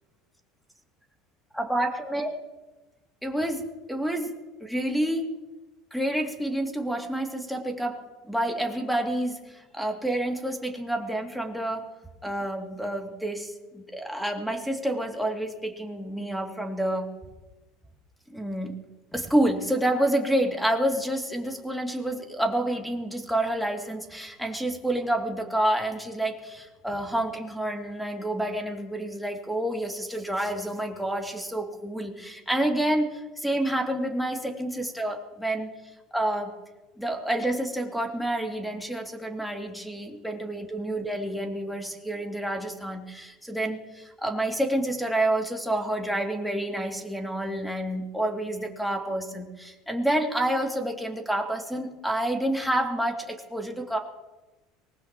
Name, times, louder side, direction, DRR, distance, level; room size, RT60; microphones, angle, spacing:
voice 1, 1.5-2.3 3.2-4.3 4.6-5.3 5.9-8.0 8.3-11.9 12.2-17.1 18.3-18.8 19.1-35.7 36.1-36.5 37.0-54.0, right 1 dB, ahead, 1 dB, 2.7 m, -28 dB
24.0 x 19.0 x 3.1 m, 1.1 s
supercardioid pair, 95°, 0 cm